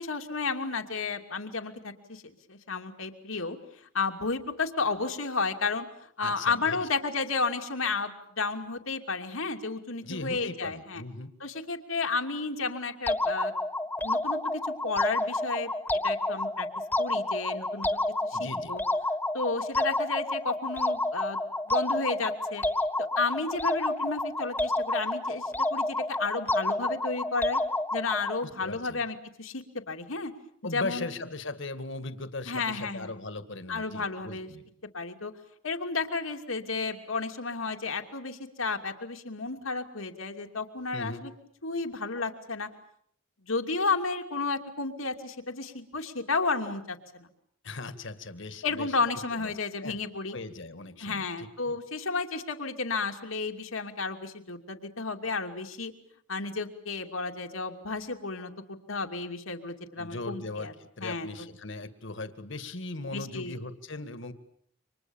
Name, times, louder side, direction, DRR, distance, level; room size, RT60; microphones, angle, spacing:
voice 1, 0.0-3.6 3.9-5.9 6.2-11.0 11.4-13.5 14.0-16.7 17.0-18.8 19.3-22.6 23.2-27.6 27.9-30.3 30.7-31.1 32.5-33.1 33.7-34.5 34.9-35.3 35.6-41.3 41.6-42.7 43.4-47.3 48.6-50.4 51.0-55.9 56.3-60.7 61.0-61.3 63.1-63.5, left 4 dB, 85° left, 5 dB, 2.8 m, -32 dB
voice 2, 6.2-6.9 10.0-11.3 18.3-18.7 28.4-29.0 30.6-34.7 40.9-41.3 47.6-49.0 49.3-49.5 49.8-50.0 50.3-51.8 60.0-64.3, left 2 dB, 65° left, 11 dB, 2.0 m, -39 dB
sound 1, 13.1-28.4, left 2 dB, 10° left, 1.3 m, -30 dB
29.5 x 26.0 x 7.3 m, 0.66 s
head